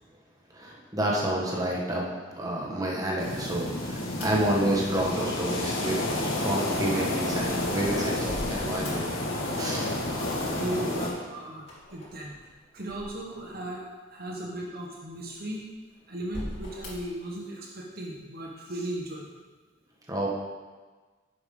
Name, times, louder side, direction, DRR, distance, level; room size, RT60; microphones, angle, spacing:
voice 1, 0.5-2.1 2.4-9.1 9.5-9.9 20.1-20.3, right 1 dB, 20° right, -3 dB, 1.5 m, -29 dB
sound 1, 3.2-11.1, left 1 dB, 80° left, 1.8 m, -30 dB
sound 2, 3.7-5.4 7.2-9.5 9.7-10.4 11.6-13.7 14.3-14.4 15.2-15.8 16.2-17.2, left 1 dB, 60° left, 2.9 m, -42 dB
voice 2, 10.2-12.4 12.7-13.8 14.1-15.7 16.1-19.3, right 1 dB, 50° right, -1 dB, 1.2 m, -36 dB
10.0 x 7.4 x 3.8 m, 1.4 s
head